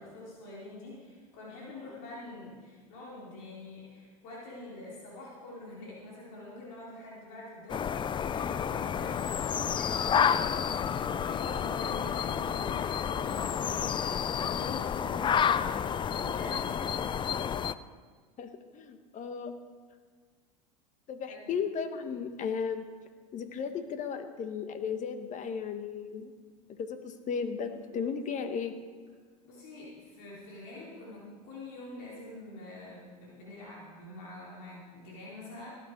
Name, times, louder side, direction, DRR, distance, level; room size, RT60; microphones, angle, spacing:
voice 1, 0.0-9.2 9.6-17.1 21.3-21.5 29.4-35.7, left 2 dB, 65° left, -5 dB, 3.8 m, -46 dB
sound 1, 7.7-17.7, left 8 dB, 25° left, 0.5 m, -30 dB
voice 2, 18.4-19.5 21.1-22.8 23.3-26.3 26.8-28.7, left 6 dB, 40° left, 8 dB, 1.4 m, -35 dB
17.5 x 9.1 x 4.7 m, 1.5 s
hypercardioid pair, 85°, 19 cm